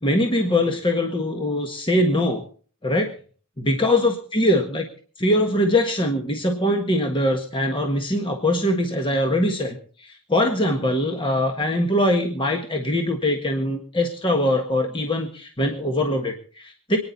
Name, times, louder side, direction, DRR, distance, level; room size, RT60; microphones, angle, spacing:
voice 1, 0.0-2.4 2.8-3.1 3.6-4.8 5.2-17.0, left 1 dB, 25° left, 3 dB, 1.5 m, -22 dB
26.0 x 9.9 x 4.1 m, 0.43 s
head